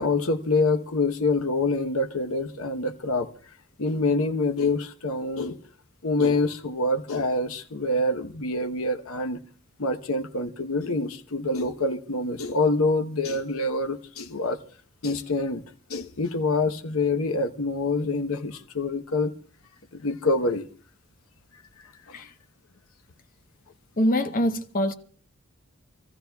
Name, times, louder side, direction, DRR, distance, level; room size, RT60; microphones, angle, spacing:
voice 1, 0.0-3.3 3.8-5.6 6.0-9.4 9.8-14.6 15.0-15.6 15.9-19.3 19.9-20.7 22.1-22.2, left 2 dB, 75° left, 1.0 m, -26 dB
voice 2, 24.0-24.9, equal, 40° left, 0.9 m, -24 dB
28.0 x 14.5 x 2.3 m
head